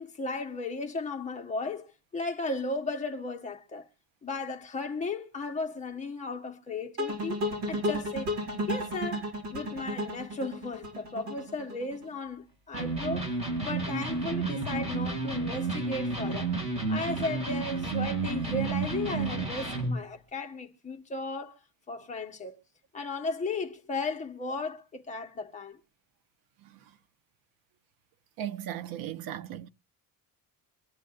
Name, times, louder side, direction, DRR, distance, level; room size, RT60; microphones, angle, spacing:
voice 1, 0.0-3.9 4.2-7.4 7.7-8.3 8.7-13.4 13.6-16.5 16.9-21.5 21.9-22.6 22.9-25.8, left 3 dB, 20° left, 1.2 m, -35 dB
sound 1, 7.0-12.1, equal, 55° right, 7.2 m, -33 dB
Electric guitar, 12.7-20.0, right 3 dB, 20° right, 5.5 m, -31 dB
voice 2, 28.4-29.7, right 11 dB, 90° right, 1.0 m, -37 dB
24.5 x 9.6 x 2.5 m
cardioid pair, 180°, 35 cm